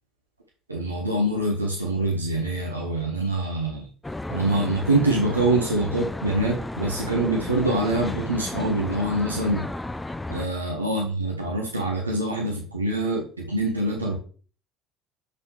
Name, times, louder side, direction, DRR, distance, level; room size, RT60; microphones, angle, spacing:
voice 1, 0.7-3.9 4.3-9.7 10.3-14.2, right 2 dB, 90° right, -1 dB, 0.9 m, -25 dB
Traffic noise roadway noise, 4.0-10.5, left 2 dB, 10° left, 0.4 m, -33 dB
6.3 x 5.4 x 3.2 m, 0.42 s
figure-of-eight pair, 65°, 0 cm